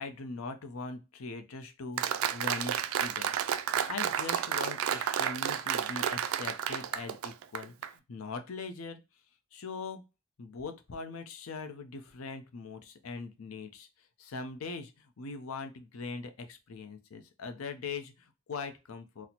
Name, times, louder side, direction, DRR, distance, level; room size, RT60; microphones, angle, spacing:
voice 1, 0.0-3.3 3.9-9.0 9.5-10.0 10.4-13.9 14.2-19.3, left 4 dB, 80° left, 7 dB, 0.5 m, -41 dB
Applause, 2.0-7.9, right 9 dB, 75° right, 0.3 m, -31 dB
4.1 x 2.0 x 2.8 m, 0.27 s
head